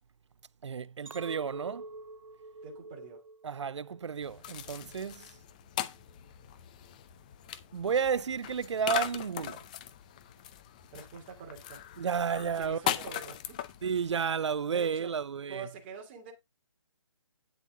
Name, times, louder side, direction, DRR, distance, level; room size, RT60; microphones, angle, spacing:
voice 1, 0.6-1.9 3.4-5.3 7.7-9.6 12.0-12.8 13.8-15.7, right 6 dB, 60° right, 0.5 m, -32 dB
Chink clink, 1.1-5.4 5.9-6.3, right 2 dB, 80° right, 1.7 m, -48 dB
voice 2, 2.6-3.3 10.9-11.8 12.4-13.6 14.7-15.2 15.5-16.3, right 5 dB, 20° right, 2.8 m, -45 dB
sound 1, 4.2-14.3, left 11 dB, 15° left, 0.5 m, -39 dB
10.0 x 6.7 x 3.7 m
hypercardioid pair, 160°, 17 cm